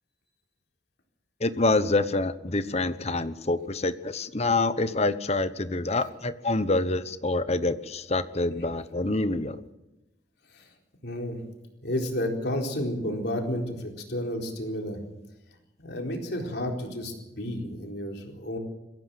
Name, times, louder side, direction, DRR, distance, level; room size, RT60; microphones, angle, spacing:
voice 1, 1.4-9.6, left 2 dB, 35° left, 13 dB, 1.1 m, -26 dB
voice 2, 11.0-11.4 11.8-15.0 15.8-18.6, left 1 dB, 60° left, 2 dB, 4.2 m, -31 dB
22.5 x 16.0 x 7.7 m, 1.0 s
head